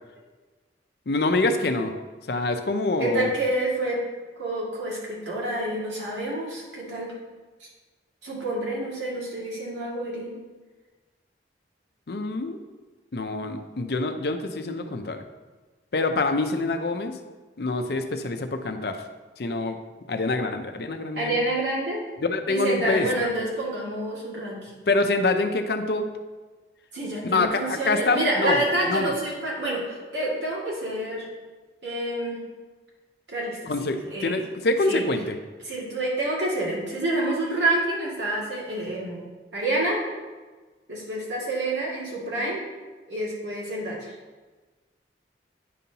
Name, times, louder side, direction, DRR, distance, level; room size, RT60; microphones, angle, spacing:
voice 1, 1.1-1.9 2.3-3.3 12.1-12.6 13.1-15.2 15.9-17.1 17.6-19.0 19.4-19.8 20.1-21.3 22.2-23.1 24.9-26.1 27.2-29.2 33.7-35.4, left 2 dB, 60° left, 7 dB, 0.5 m, -25 dB
voice 2, 3.0-4.0 4.4-7.1 8.2-10.3 21.2-22.0 22.5-24.7 26.9-31.3 31.8-32.4 33.3-34.4 34.9-35.1 35.6-39.2 39.5-40.0 40.9-42.6 43.1-44.1, right 1 dB, 90° right, -5 dB, 2.1 m, -28 dB
9.2 x 5.4 x 2.8 m, 1.3 s
head